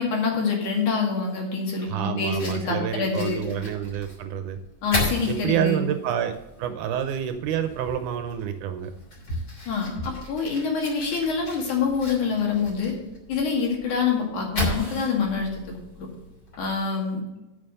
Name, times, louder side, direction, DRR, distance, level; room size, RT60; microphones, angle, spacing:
voice 1, 0.0-3.4 4.8-5.9 9.7-13.0 13.3-16.1 16.6-17.2, left 5 dB, 65° left, 0 dB, 3.4 m, -26 dB
voice 2, 1.8-4.6 5.3-8.9, right 9 dB, 75° right, 8 dB, 2.0 m, -28 dB
Fire, 2.2-16.8, left 1 dB, 30° left, 3.3 m, -36 dB
8.9 x 6.9 x 6.7 m, 1.0 s
omnidirectional pair, 3.9 m